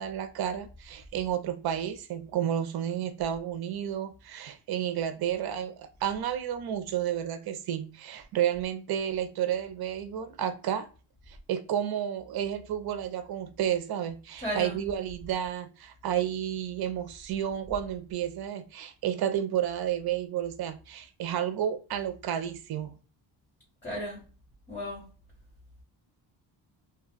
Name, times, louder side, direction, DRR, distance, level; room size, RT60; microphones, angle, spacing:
voice 1, 0.0-10.9 11.3-22.9, right 10 dB, 55° right, 0.6 m, -31 dB
voice 2, 14.4-14.8 23.8-24.2 24.7-25.0, equal, 20° left, 1.7 m, -34 dB
2.8 x 2.3 x 3.8 m
cardioid pair, 140°, 44 cm